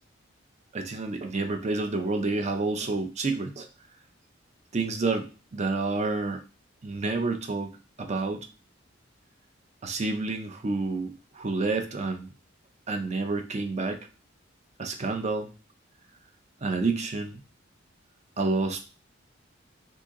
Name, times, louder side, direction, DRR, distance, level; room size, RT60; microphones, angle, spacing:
voice 1, 0.7-3.7 4.7-6.4 6.8-7.7 8.0-8.5 9.8-12.3 12.9-14.0 14.8-15.5 16.6-17.4 18.4-18.8, right 3 dB, 35° right, 6 dB, 0.5 m, -29 dB
2.8 x 2.7 x 3.6 m, 0.33 s
head